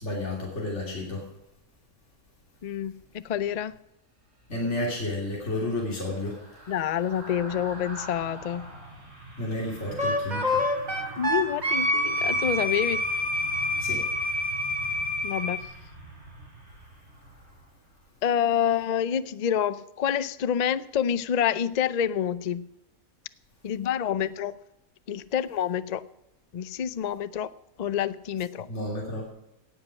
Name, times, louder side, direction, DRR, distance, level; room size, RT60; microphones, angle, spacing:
voice 1, 0.0-1.3 4.5-6.4 9.4-10.6 13.8-14.0 28.7-29.3, left 1 dB, 50° left, -2 dB, 3.3 m, -31 dB
voice 2, 2.6-3.8 6.7-8.7 11.2-13.0 15.2-15.6 18.2-22.7 23.6-24.5 25.1-26.0 26.5-27.5 27.8-28.7, left 9 dB, 75° left, 16 dB, 0.3 m, -27 dB
sound 1, 4.8-18.1 18.5-18.7, right 1 dB, 45° right, 5.2 m, -44 dB
Wind instrument woodwind instrument, 10.0-15.6, left 1 dB, 30° right, 2.1 m, -27 dB
18.0 x 7.7 x 6.0 m, 0.87 s
omnidirectional pair, 1.5 m